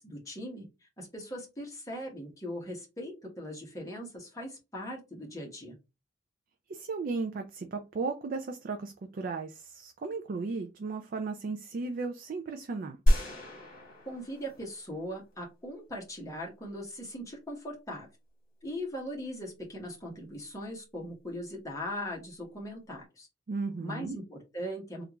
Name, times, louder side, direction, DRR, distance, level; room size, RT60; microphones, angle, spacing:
voice 1, 0.0-5.8 14.1-18.1 18.6-23.3 23.8-25.0, equal, 15° left, 1.1 m, -40 dB
voice 2, 6.7-13.0 23.5-24.2, right 4 dB, 45° right, 0.3 m, -35 dB
sound 1, 13.1-15.3, equal, 45° left, 1.4 m, -29 dB
3.4 x 2.4 x 2.9 m
head